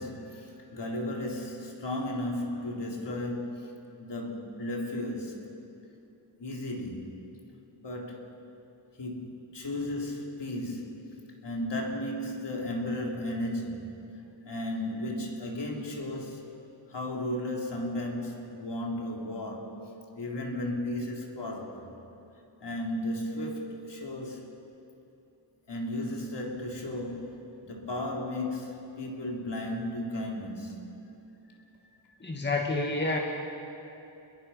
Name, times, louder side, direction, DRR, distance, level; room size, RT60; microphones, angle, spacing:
voice 1, 0.0-5.5 6.4-7.1 7.8-8.3 9.0-11.1 11.4-13.9 14.4-16.5 16.9-21.9 22.6-24.5 25.7-31.0 31.8-31.9, left 1 dB, 55° left, -1 dB, 3.8 m, -35 dB
voice 2, 32.2-33.2, left 2 dB, 20° left, 0 dB, 2.1 m, -28 dB
30.0 x 21.5 x 5.8 m, 2.9 s
wide cardioid pair, 115°, 48 cm